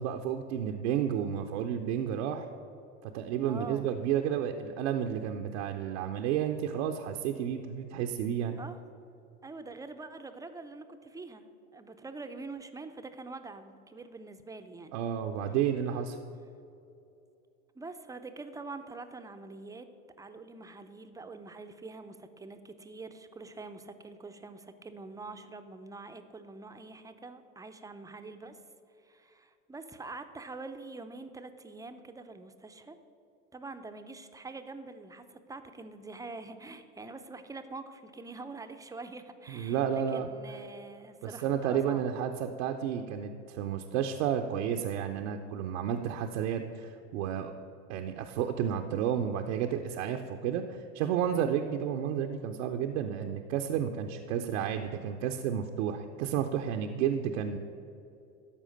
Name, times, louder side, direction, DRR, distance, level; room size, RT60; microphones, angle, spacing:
voice 1, 0.0-2.5 3.0-8.6 14.9-16.2 39.5-40.3 41.2-47.5 47.9-57.6, right 9 dB, 65° right, 4 dB, 0.7 m, -31 dB
voice 2, 3.5-3.9 8.6-8.8 9.4-11.5 11.7-15.0 17.7-19.9 20.2-28.6 29.0-33.0 33.5-42.1, right 3 dB, 10° right, 8 dB, 0.6 m, -45 dB
13.0 x 4.9 x 6.4 m, 2.7 s
hypercardioid pair, 95°, 39 cm